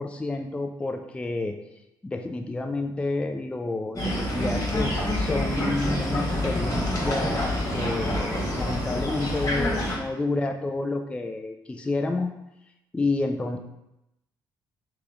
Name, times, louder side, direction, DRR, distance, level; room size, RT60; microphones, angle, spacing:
voice 1, 0.0-1.6 2.0-12.3 12.9-13.6, left 2 dB, 10° left, 5 dB, 0.3 m, -29 dB
sound 1, 4.0-10.0, left 1 dB, 30° left, 1.4 m, -27 dB
3.6 x 3.3 x 3.6 m, 0.87 s
figure-of-eight pair, 45°, 11 cm